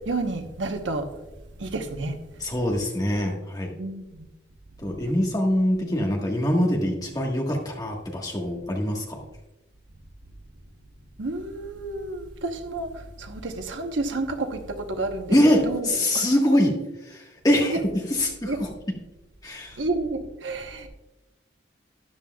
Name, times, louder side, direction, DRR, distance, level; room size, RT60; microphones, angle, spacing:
voice 1, 0.1-1.1 1.6-2.2 3.8-4.3 11.2-15.4 15.6-16.2 17.7-17.8 18.4-18.6 19.8-20.9, right 2 dB, 90° right, 6 dB, 1.1 m, -30 dB
voice 2, 2.4-3.7 4.8-9.2 15.3-16.8 17.1-17.8 18.1-18.7 19.4-19.8, left 1 dB, 20° left, 0 dB, 1.5 m, -23 dB
12.5 x 10.0 x 2.4 m, 1.0 s
head